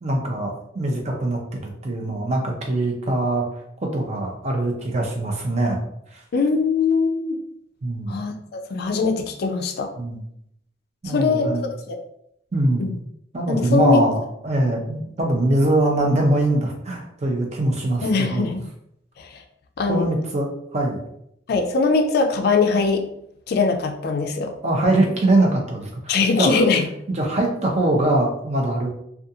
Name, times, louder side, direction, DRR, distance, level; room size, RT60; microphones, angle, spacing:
voice 1, 0.0-3.5 3.8-5.8 6.1-6.2 7.8-8.2 10.0-10.2 11.0-11.6 12.5-12.8 13.3-18.5 19.9-21.0 24.6-26.6 27.1-28.9, right 1 dB, 35° right, 1 dB, 0.5 m, -22 dB
voice 2, 6.3-7.4 8.1-9.9 11.0-11.5 11.9-12.0 12.8-12.9 13.5-14.0 18.0-18.6 19.2-19.4 19.8-20.1 21.5-23.1 23.5-24.5 26.1-26.9, left 4 dB, 55° left, 5 dB, 0.3 m, -21 dB
2.5 x 2.3 x 2.7 m, 0.75 s
head